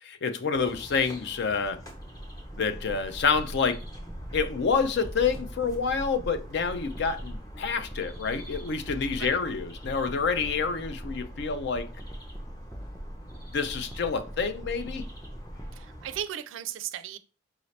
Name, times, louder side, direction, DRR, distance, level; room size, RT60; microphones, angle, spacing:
voice 1, 0.0-1.8 2.6-3.8 4.3-11.9 13.5-15.0, left 5 dB, 60° left, 0.4 m, -28 dB
sound 1, 0.5-16.2, equal, 20° left, 1.0 m, -45 dB
sound 2, 2.5-15.8, equal, 5° left, 0.4 m, -42 dB
voice 2, 15.7-17.2, right 10 dB, 70° right, 0.4 m, -36 dB
4.8 x 2.7 x 3.1 m
head